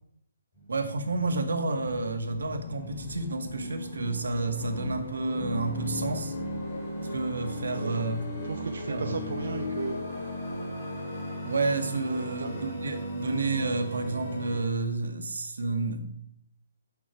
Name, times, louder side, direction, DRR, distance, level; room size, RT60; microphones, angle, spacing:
sound 1, 0.5-14.6, left 1 dB, 15° left, 2.7 m, -36 dB
voice 1, 0.7-6.3 7.1-8.2 8.9-9.1 11.4-16.2, right 3 dB, 80° right, 6 dB, 1.9 m, -30 dB
voice 2, 8.4-10.0 12.0-12.6, right 4 dB, 65° right, 6 dB, 0.8 m, -35 dB
8.5 x 7.9 x 4.6 m, 0.69 s
hypercardioid pair, 180°, 0 cm